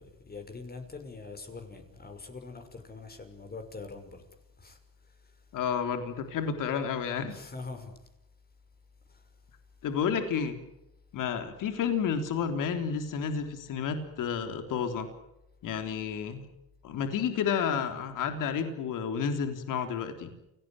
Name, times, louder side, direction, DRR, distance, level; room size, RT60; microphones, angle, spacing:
voice 1, 0.0-4.2 4.6-5.4 7.3-8.1 9.1-9.3, left 4 dB, 25° left, 6.1 m, -44 dB
voice 2, 5.5-7.4 9.8-10.6 11.1-15.1 15.6-16.5 16.8-20.3, left 7 dB, 65° left, 3.6 m, -31 dB
29.0 x 18.5 x 9.0 m
cardioid pair, 105°, 34 cm